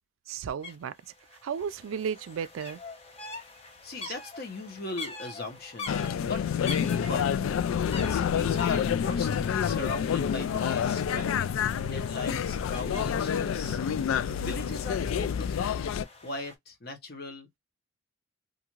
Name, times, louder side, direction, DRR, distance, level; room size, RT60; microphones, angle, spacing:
voice 1, 0.3-1.0 1.4-2.8 4.0-4.1, right 7 dB, 85° right, 0.3 m, -34 dB
sound 1, 0.6-0.7 1.0-16.5, left 3 dB, 30° left, 0.7 m, -45 dB
voice 2, 3.8-6.5 6.8-7.4 7.9-11.5 11.8-13.8 14.4-15.9 16.2-17.6, left 3 dB, 50° left, 0.9 m, -39 dB
sound 2, 5.9-16.0, left 8 dB, 85° left, 0.3 m, -28 dB
2.6 x 2.4 x 2.9 m
head